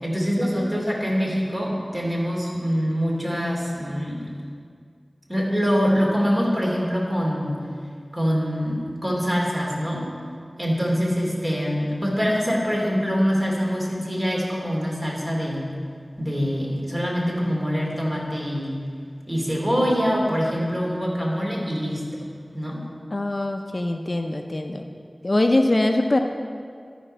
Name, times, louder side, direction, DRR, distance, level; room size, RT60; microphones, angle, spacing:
voice 1, 0.0-4.3 5.3-7.6 8.1-10.1 10.6-15.6 16.2-18.8 19.3-22.2 22.5-22.8, equal, 30° right, -3 dB, 2.7 m, -24 dB
voice 2, 23.1-24.9 25.2-26.2, left 2 dB, 45° left, 4 dB, 0.6 m, -22 dB
13.0 x 5.1 x 5.5 m, 2.1 s
wide cardioid pair, 40°, 0 cm